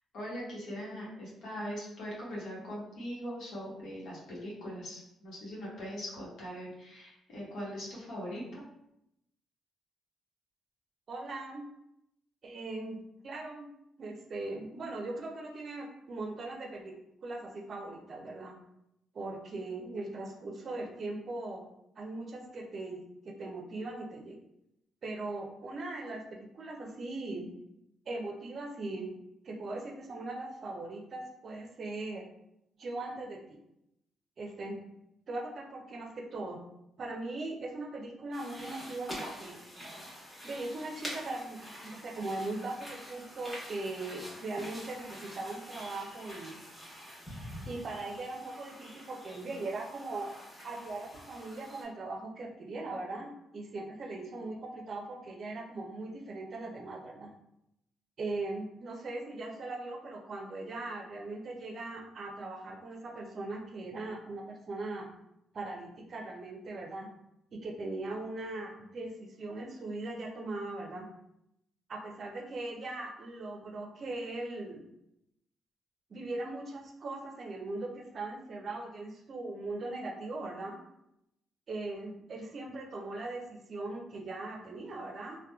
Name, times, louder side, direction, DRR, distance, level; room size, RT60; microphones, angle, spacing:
voice 1, 0.1-8.6, equal, 75° left, -6 dB, 0.9 m, -41 dB
voice 2, 11.1-11.7 12.4-13.0 13.2-13.7 14.0-16.9 17.2-18.5 19.1-21.7 22.0-24.4 25.0-27.5 28.1-29.1 29.4-32.2 32.8-33.6 34.4-34.8 35.3-36.6 37.0-39.6 40.4-46.5 47.7-50.3 50.6-57.3 58.2-65.1 65.5-67.1 67.5-71.1 71.9-74.8 76.1-80.8 81.7-85.4, right 2 dB, 50° right, 1 dB, 0.5 m, -39 dB
sound 1, 38.3-51.8, equal, 5° left, 1.0 m, -46 dB
2.8 x 2.1 x 2.2 m, 0.82 s
cardioid pair, 90°, 0 cm